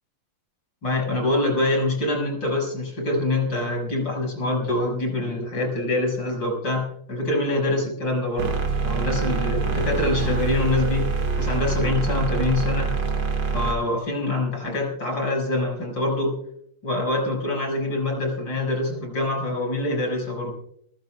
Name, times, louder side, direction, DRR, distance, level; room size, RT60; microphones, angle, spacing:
voice 1, 0.8-8.6 8.8-12.9 13.5-16.4 16.8-20.5, left 2 dB, 65° left, 1 dB, 6.4 m, -25 dB
sound 1, 8.4-13.7, right 4 dB, 60° right, 2.4 m, -25 dB
30.0 x 14.5 x 2.3 m, 0.68 s
omnidirectional pair, 2.2 m